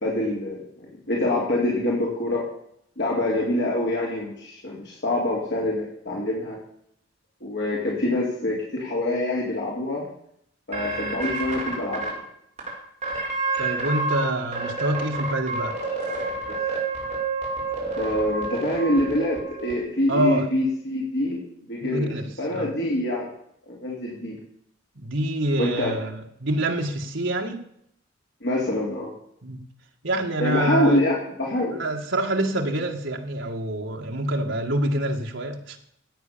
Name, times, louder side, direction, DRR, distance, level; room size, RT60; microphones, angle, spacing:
voice 1, 0.0-2.4 3.0-6.6 7.4-10.0 10.7-12.1 16.5-16.6 18.0-21.4 21.7-22.1 22.4-23.3 23.7-24.4 25.6-26.0 28.4-29.1 30.4-31.7, left 1 dB, 55° left, -3 dB, 3.8 m, -25 dB
sound 1, 10.7-12.1 12.6-12.7 13.0-14.2 14.5-19.7, right 4 dB, 30° right, 5.4 m, -28 dB
voice 2, 13.6-15.8 20.1-20.5 21.8-22.7 25.0-27.6 29.4-29.6 30.0-31.0 31.7-35.8, right 1 dB, 65° right, 2 dB, 2.2 m, -26 dB
16.5 x 8.8 x 7.1 m, 0.70 s
head